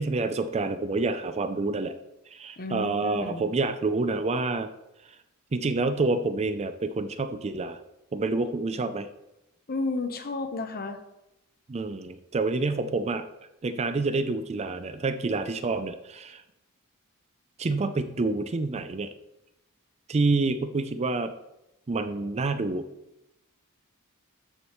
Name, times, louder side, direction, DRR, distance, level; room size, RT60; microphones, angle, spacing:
voice 1, 0.0-2.0 2.3-4.7 5.5-7.8 8.1-9.1 11.7-13.3 13.6-16.4 17.6-19.1 20.1-21.3 21.9-22.9, right 3 dB, 30° right, 11 dB, 0.4 m, -28 dB
voice 2, 2.6-3.5 9.7-11.0, left 3 dB, 45° left, 8 dB, 0.9 m, -32 dB
13.5 x 6.4 x 3.1 m, 0.91 s
head